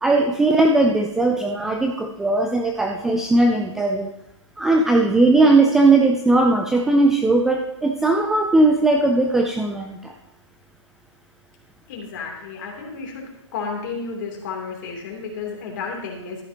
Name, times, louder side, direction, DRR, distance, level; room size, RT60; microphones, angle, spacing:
voice 1, 0.0-4.1 4.6-10.1, right 2 dB, 5° right, 1 dB, 0.3 m, -18 dB
voice 2, 11.9-16.4, left 5 dB, 40° left, 0 dB, 3.0 m, -32 dB
13.5 x 9.9 x 2.9 m, 0.86 s
hypercardioid pair, 145°, 16 cm